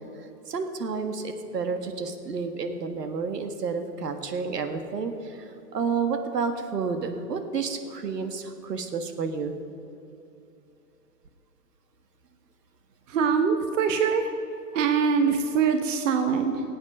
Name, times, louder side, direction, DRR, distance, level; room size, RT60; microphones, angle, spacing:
voice 1, 0.5-9.5, right 5 dB, 80° right, 7 dB, 1.6 m, -30 dB
voice 2, 13.1-14.3 14.7-16.6, right 6 dB, 50° right, 6 dB, 1.1 m, -23 dB
18.0 x 8.8 x 5.4 m, 2.7 s
hypercardioid pair, 155°, 48 cm